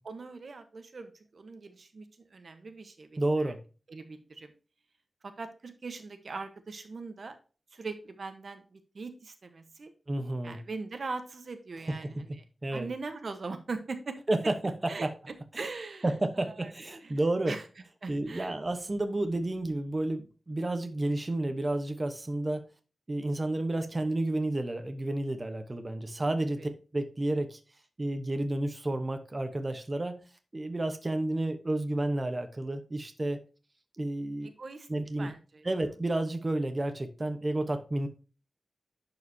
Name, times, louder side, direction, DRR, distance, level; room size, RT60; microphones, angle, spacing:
voice 1, 0.0-2.1 2.3-3.5 3.9-4.5 5.2-7.4 7.7-9.9 10.4-12.4 12.7-14.2 14.9-15.1 15.6-16.7 17.0-17.2 17.5-17.6 18.0-18.6 26.6-26.7 34.4-34.9 35.2-35.6, right 4 dB, 60° right, 8 dB, 1.0 m, -41 dB
voice 2, 3.2-3.6 10.1-10.6 12.0-12.2 12.6-12.9 14.3-15.1 16.0-17.5 18.1-22.6 23.1-27.6 28.0-30.2 30.5-33.4 34.0-34.5 34.9-35.3 35.6-38.1, right 1 dB, 30° right, 7 dB, 1.0 m, -31 dB
11.0 x 4.9 x 2.7 m, 0.34 s
wide cardioid pair, 120°, 0 cm